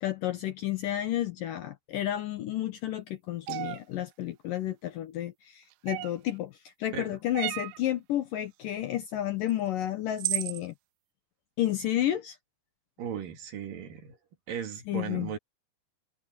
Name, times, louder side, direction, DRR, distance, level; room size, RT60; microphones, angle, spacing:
voice 1, 0.0-6.5 6.8-10.7 11.6-12.4 14.9-15.3, left 12 dB, 70° left, 2.1 m, -31 dB
sound 1, 3.5-3.8 5.9-6.3 7.3-7.8 9.5-9.6 10.2-10.6, right 21 dB, 85° right, 2.9 m, -32 dB
voice 2, 13.0-14.2 14.5-15.4, right 8 dB, 55° right, 3.4 m, -37 dB
omnidirectional pair, 5.0 m